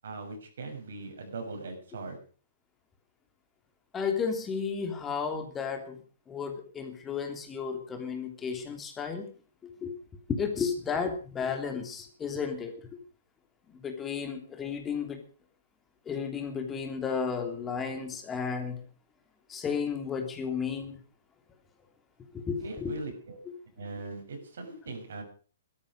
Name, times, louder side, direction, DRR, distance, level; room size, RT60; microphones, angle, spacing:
voice 1, 0.0-2.2 22.6-23.4 23.8-25.2, right 3 dB, 60° right, 4 dB, 6.9 m, -40 dB
voice 2, 3.9-6.0 6.3-9.2 9.8-9.9 10.3-12.7 13.8-15.2 16.1-18.8 19.5-21.0 22.5-22.9, left 6 dB, 15° left, 5 dB, 3.1 m, -33 dB
16.5 x 13.5 x 6.4 m, 0.40 s
figure-of-eight pair, 120°, 0 cm